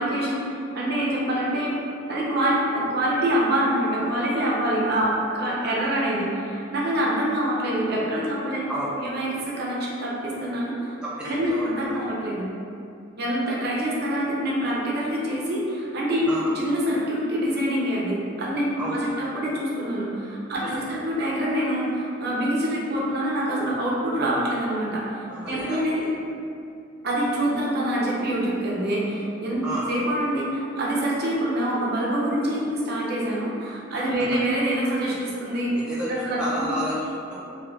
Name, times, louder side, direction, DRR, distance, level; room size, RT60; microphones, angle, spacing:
voice 1, 0.0-1.7 2.1-8.6 9.0-10.9 11.2-12.5 13.2-20.6 20.9-26.1 27.0-35.7 36.1-36.7, right 1 dB, 55° right, -5 dB, 0.6 m, -25 dB
voice 2, 11.0-12.1 16.3-16.6 18.8-19.1 20.6-21.0 25.3-25.9 29.6-29.9 34.2-34.3 35.7-37.4, equal, 5° right, -8 dB, 0.3 m, -32 dB
3.7 x 2.2 x 2.2 m, 2.6 s
head